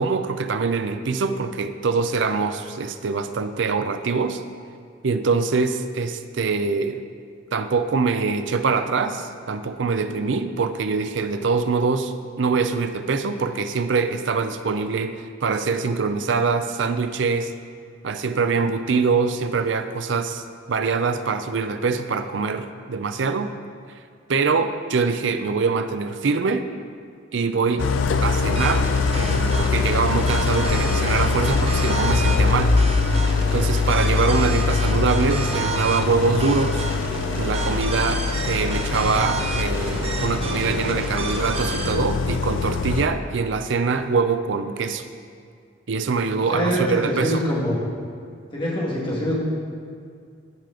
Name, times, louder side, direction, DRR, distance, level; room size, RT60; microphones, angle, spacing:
voice 1, 0.0-4.4 5.0-7.0 7.5-17.5 18.0-23.5 23.9-24.0 24.3-26.7 27.3-27.9 28.2-28.9 29.1-32.8 33.5-36.9 37.4-45.0 45.9-47.4, right 4 dB, 65° right, 9 dB, 0.5 m, -24 dB
Idling, 27.8-43.1, left 4 dB, 70° left, 0.4 m, -23 dB
sound 1, 28.6-41.9, right 3 dB, 30° right, 0.7 m, -31 dB
voice 2, 46.5-47.8 48.5-49.3, equal, 25° left, -5 dB, 1.9 m, -24 dB
14.5 x 5.0 x 3.8 m, 2.3 s
head